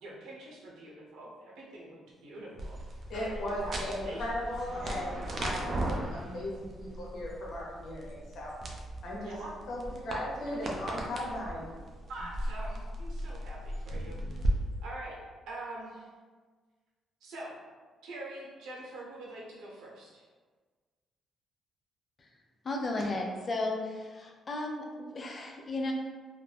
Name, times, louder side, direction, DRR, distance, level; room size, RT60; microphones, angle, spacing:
voice 1, 0.0-2.8 3.5-4.3 9.2-9.6 12.1-14.5 14.8-15.1 15.5-16.1 17.2-17.5 18.0-20.2, right 2 dB, 80° right, -4 dB, 0.8 m, -44 dB
sound 1, 2.6-14.5, right 1 dB, 45° right, 0.5 m, -37 dB
voice 2, 3.1-8.5 9.0-9.3 9.7-11.6, left 1 dB, 70° left, -4 dB, 0.9 m, -37 dB
voice 3, 22.6-25.9, left 2 dB, 35° left, 1 dB, 0.5 m, -34 dB
2.4 x 2.1 x 3.3 m, 1.4 s
cardioid pair, 90°, 0 cm